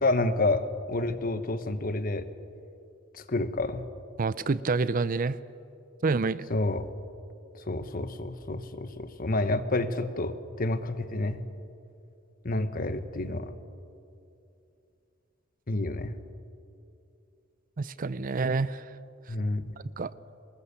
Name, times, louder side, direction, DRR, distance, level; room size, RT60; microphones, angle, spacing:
voice 1, 0.0-2.3 3.1-3.8 6.5-6.9 7.5-11.4 12.4-13.5 15.7-16.2 19.3-19.7, left 2 dB, 45° left, 11 dB, 1.2 m, -29 dB
voice 2, 4.2-5.4 6.0-6.5 17.8-18.8 20.0-20.1, right 4 dB, 45° right, 16 dB, 0.6 m, -27 dB
26.0 x 21.0 x 7.0 m, 2.6 s
head